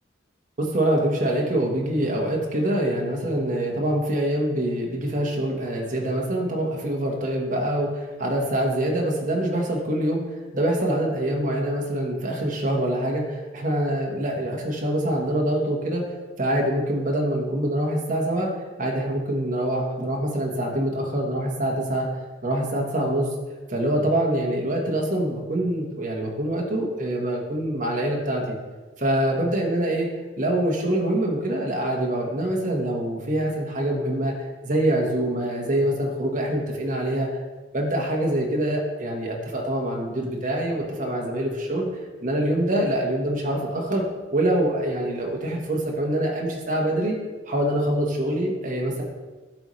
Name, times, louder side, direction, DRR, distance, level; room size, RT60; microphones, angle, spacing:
voice 1, 0.6-10.2 10.5-16.0 16.4-18.5 18.8-22.1 22.4-23.3 23.7-28.5 29.0-30.1 30.4-34.3 34.6-37.3 37.7-41.9 42.2-44.0 44.3-47.2 47.5-49.0, right 1 dB, 45° right, -1 dB, 1.3 m, -25 dB
11.5 x 4.1 x 3.2 m, 1.3 s
head